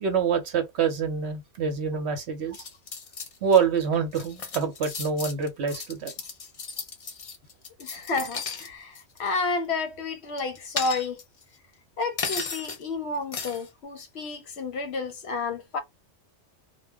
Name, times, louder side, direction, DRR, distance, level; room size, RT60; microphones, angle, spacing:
voice 1, 0.0-2.6 3.4-6.1, right 6 dB, 65° right, 1.0 m, -26 dB
sound 1, 2.5-3.6 3.9-8.7 8.9-9.3 10.4-11.4 12.2-12.8 13.3-13.7, left 5 dB, 50° left, 0.4 m, -35 dB
voice 2, 7.8-11.2 12.0-15.8, left 3 dB, 65° left, 0.8 m, -31 dB
2.3 x 2.1 x 3.5 m
omnidirectional pair, 1.2 m